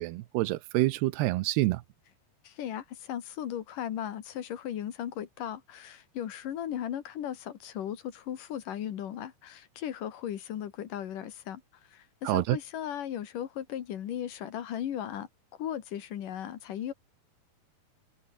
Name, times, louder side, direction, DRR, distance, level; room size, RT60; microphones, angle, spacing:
voice 1, 0.0-1.8 12.2-12.6, right 18 dB, 85° right, 2.9 m, -27 dB
voice 2, 2.4-11.6 11.9-15.3 15.6-16.9, left 10 dB, 60° left, 3.0 m, -37 dB
omnidirectional pair, 4.7 m